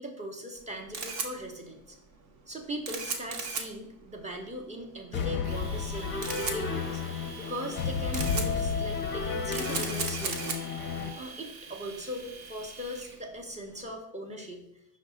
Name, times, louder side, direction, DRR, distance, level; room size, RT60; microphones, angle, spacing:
voice 1, 0.0-2.0 2.5-10.6 11.1-14.7, equal, 15° right, 1 dB, 0.7 m, -39 dB
Camera, 0.6-13.9, right 5 dB, 50° right, 0.8 m, -39 dB
sound 1, 5.1-11.1, left 5 dB, 25° left, 0.6 m, -32 dB
Domestic sounds home sounds, 5.4-13.2, right 4 dB, 85° right, 0.8 m, -48 dB
5.2 x 2.1 x 3.8 m, 0.81 s
supercardioid pair, 90°, 44 cm